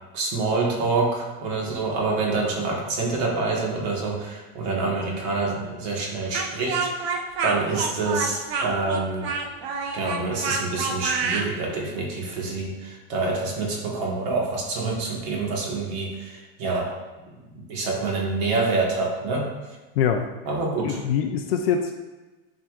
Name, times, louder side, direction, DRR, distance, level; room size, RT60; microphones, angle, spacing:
voice 1, 0.1-9.3 9.9-16.9 17.3-19.5 20.4-21.0, right 3 dB, 45° right, -2 dB, 1.6 m, -27 dB
Speech, 6.3-11.5, right 5 dB, 90° right, 1.0 m, -28 dB
voice 2, 20.8-21.9, left 8 dB, 80° left, 3 dB, 0.7 m, -23 dB
10.5 x 4.8 x 2.4 m, 1.2 s
supercardioid pair, 180°, 30 cm